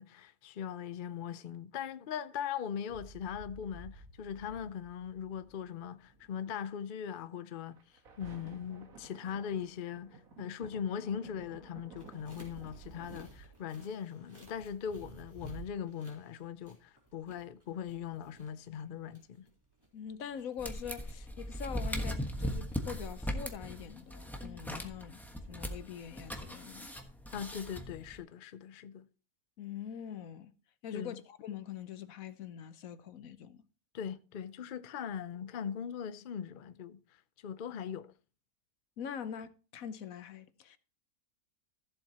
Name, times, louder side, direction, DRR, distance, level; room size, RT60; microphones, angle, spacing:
voice 1, 0.0-7.8 8.2-19.5 27.3-29.1 30.9-31.2 33.9-37.0 37.4-38.1, left 8 dB, 55° left, 0.6 m, -40 dB
sound 1, 2.9-6.5 7.7-13.2, right 3 dB, 70° right, 1.9 m, -54 dB
sound 2, 12.0-24.1, right 3 dB, 15° right, 3.7 m, -55 dB
voice 2, 19.9-25.2 25.5-26.9 29.6-30.5 30.8-33.6 39.0-40.8, left 8 dB, 70° left, 1.2 m, -43 dB
sound 3, 20.6-28.2, equal, ahead, 1.1 m, -39 dB
15.0 x 7.5 x 2.9 m
omnidirectional pair, 1.5 m